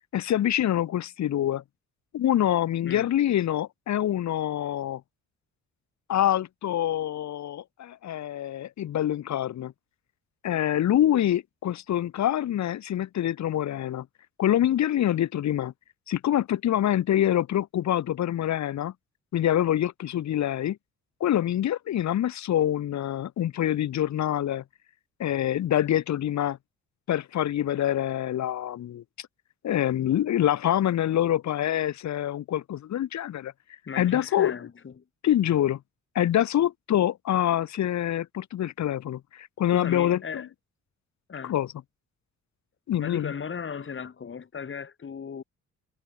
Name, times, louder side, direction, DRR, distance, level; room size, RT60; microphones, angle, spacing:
voice 1, 0.1-1.6 2.1-5.0 6.1-9.7 10.4-14.1 14.4-15.7 16.1-18.9 19.3-20.8 21.2-24.6 25.2-26.6 27.1-29.3 29.6-33.5 34.0-34.5 35.2-35.8 36.2-40.5 41.4-41.7 42.9-43.3, left 11 dB, 65° left, 1.8 m, -25 dB
voice 2, 33.9-35.0 39.7-40.5 41.3-41.5 43.0-45.4, left 6 dB, 40° left, 4.6 m, -36 dB
cardioid pair, 90°, 30 cm